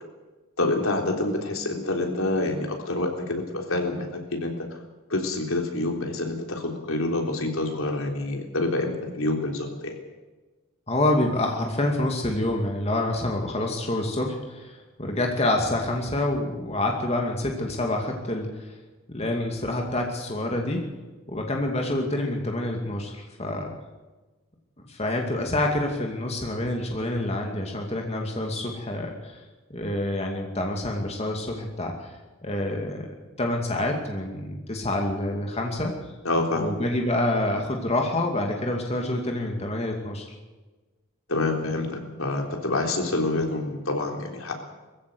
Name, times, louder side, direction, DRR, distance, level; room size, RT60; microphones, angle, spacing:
voice 1, 0.6-4.7 5.1-10.0 36.2-36.7 41.3-44.6, left 2 dB, 75° left, 2 dB, 3.7 m, -27 dB
voice 2, 10.9-18.7 19.1-20.9 21.3-23.7 24.8-29.4 29.7-32.1 32.4-33.1 33.4-36.0 36.5-40.3, left 1 dB, 30° left, 1 dB, 2.5 m, -27 dB
21.0 x 15.5 x 8.0 m, 1.2 s
head